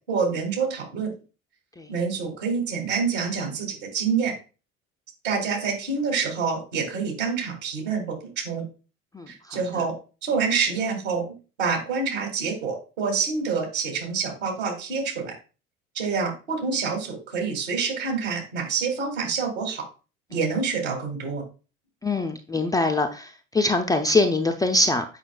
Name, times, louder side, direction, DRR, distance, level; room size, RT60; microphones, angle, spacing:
voice 1, 0.1-1.1 1.9-4.3 5.2-8.6 9.3-9.9 10.2-11.3 11.6-15.3 15.9-19.8 20.3-21.4, right 5 dB, 65° right, 2 dB, 2.7 m, -27 dB
voice 2, 22.0-23.3 23.5-25.0, left 2 dB, 10° left, 4 dB, 0.4 m, -22 dB
8.1 x 5.6 x 2.3 m, 0.33 s
figure-of-eight pair, 65°, 39 cm